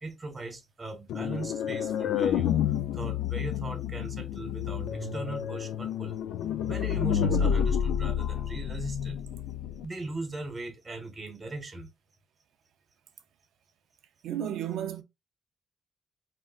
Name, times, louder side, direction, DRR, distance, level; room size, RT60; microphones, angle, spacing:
voice 1, 0.0-6.2 6.6-9.2 9.8-11.9, right 3 dB, 25° right, 0.8 m, -39 dB
sound 1, 1.1-9.9, left 8 dB, 90° left, 0.3 m, -29 dB
voice 2, 14.2-15.0, right 10 dB, 80° right, 0.5 m, -32 dB
3.6 x 2.1 x 2.3 m
cardioid pair, 135°, 0 cm